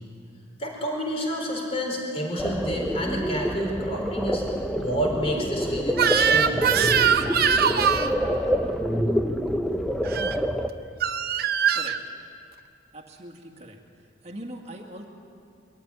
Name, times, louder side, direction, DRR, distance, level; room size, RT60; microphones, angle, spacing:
voice 1, 0.6-7.1, equal, 30° left, 0 dB, 4.3 m, -29 dB
sound 1, 2.4-10.7, equal, ahead, 0.7 m, -27 dB
Crying sobbing / Screech, 5.9-8.1 10.0-10.4 11.0-12.0, right 7 dB, 50° right, 0.7 m, -22 dB
voice 2, 12.9-13.8 14.2-15.0, right 1 dB, 35° right, 2 dB, 2.1 m, -41 dB
23.0 x 14.0 x 9.7 m, 2.5 s
head